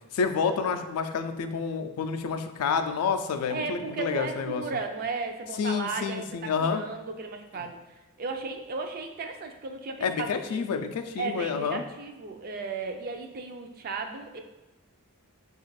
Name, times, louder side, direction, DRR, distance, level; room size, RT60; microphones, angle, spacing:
voice 1, 0.1-4.6 5.6-6.8 10.0-11.8, left 5 dB, 80° left, 7 dB, 0.4 m, -29 dB
voice 2, 3.5-6.3 6.6-7.8 8.2-10.8 11.2-14.4, right 4 dB, 40° right, 5 dB, 0.3 m, -35 dB
4.9 x 2.4 x 3.1 m, 1.1 s
head